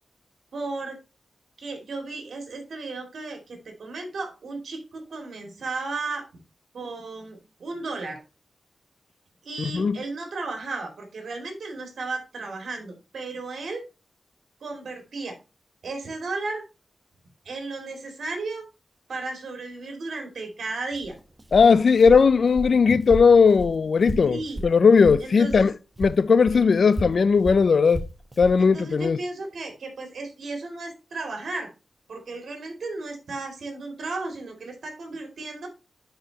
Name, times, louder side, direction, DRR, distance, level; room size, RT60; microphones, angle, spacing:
voice 1, 0.5-1.0 1.6-6.3 6.7-8.2 9.4-13.8 14.6-15.4 15.8-16.6 17.4-18.6 19.1-21.1 22.9-23.0 24.2-24.6 25.2-25.7 26.5-26.6 28.6-31.7 32.1-35.7, right 3 dB, 80° right, 2.7 m, -34 dB
voice 2, 9.6-10.0 21.5-25.7 26.0-28.1 28.4-29.2, left 5 dB, 70° left, 0.4 m, -18 dB
Walk footsteps, 20.9-25.7 26.0-28.6, right 1 dB, 20° right, 1.1 m, -35 dB
10.5 x 4.8 x 2.9 m
wide cardioid pair, 80°, 0 cm